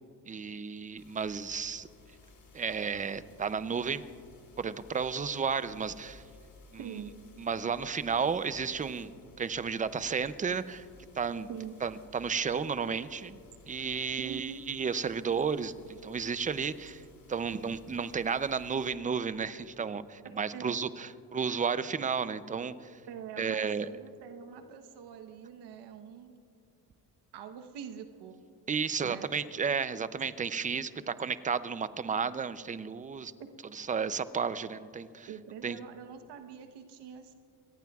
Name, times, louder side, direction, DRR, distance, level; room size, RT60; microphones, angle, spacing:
voice 1, 0.3-1.9 2.5-4.0 4.6-6.2 6.8-7.0 7.4-9.1 9.4-10.9 11.1-11.5 11.8-13.4 13.7-17.0 17.3-23.0 23.4-23.9 28.7-33.3 33.7-35.3 35.6-35.8, right 6 dB, 20° right, 14 dB, 0.5 m, -33 dB
sound 1, 1.0-18.9, left 3 dB, 45° left, 3.9 m, -57 dB
voice 2, 6.8-7.1 11.5-11.7 14.2-14.6 20.5-20.8 23.1-26.3 27.3-28.3 29.0-29.3 33.4-33.5 35.3-37.3, right 8 dB, 90° right, 7 dB, 1.1 m, -44 dB
27.0 x 18.5 x 2.4 m, 2.4 s
cardioid pair, 120°, 40 cm